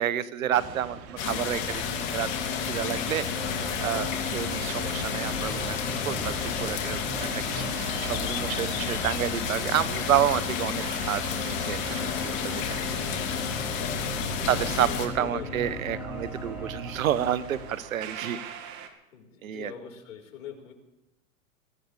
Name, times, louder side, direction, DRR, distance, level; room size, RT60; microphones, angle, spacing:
voice 1, 0.0-1.8 2.1-2.3 2.7-3.2 3.8-5.8 6.0-6.3 6.6-12.8 14.5-18.4 19.4-19.7, right 10 dB, 80° right, 16 dB, 1.2 m, -29 dB
sound 1, 0.5-18.9, right 8 dB, 50° right, 2.2 m, -45 dB
sound 2, 0.7-17.7, left 2 dB, 5° right, 7.3 m, -38 dB
sound 3, 1.2-15.1, left 6 dB, 45° left, 3.4 m, -31 dB
voice 2, 14.3-15.5 19.1-20.7, left 8 dB, 70° left, 1 dB, 4.9 m, -43 dB
24.0 x 15.0 x 3.5 m, 0.94 s
hypercardioid pair, 120°, 40 cm